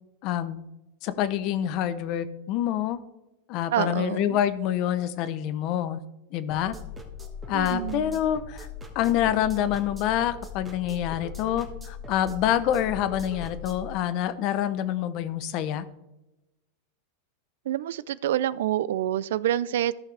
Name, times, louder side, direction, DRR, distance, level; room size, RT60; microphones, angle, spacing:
voice 1, 0.2-0.6 1.0-3.0 3.5-6.0 6.3-6.8 7.5-8.7 8.9-15.8, left 11 dB, 50° left, 14 dB, 0.8 m, -26 dB
voice 2, 3.7-4.4 7.5-8.0 17.7-19.9, right 12 dB, 80° right, 19 dB, 0.3 m, -27 dB
sound 1, 6.5-13.9, left 5 dB, 10° right, 1.4 m, -40 dB
14.0 x 5.8 x 3.3 m, 0.98 s
supercardioid pair, 130°, 0 cm